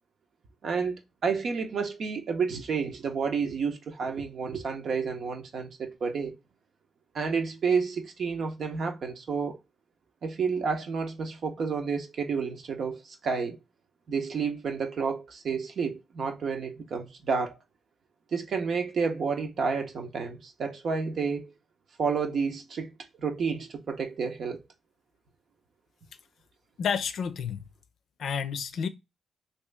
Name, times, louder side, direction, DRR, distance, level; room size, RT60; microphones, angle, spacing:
voice 1, 0.6-6.4 7.1-9.6 10.2-13.6 14.1-17.5 18.3-21.5 22.0-22.9 23.2-24.6, right 5 dB, 70° right, 0.8 m, -30 dB
voice 2, 26.8-27.7 28.2-28.9, left 7 dB, 75° left, 0.5 m, -30 dB
3.1 x 2.7 x 3.3 m
cardioid pair, 70°, 0 cm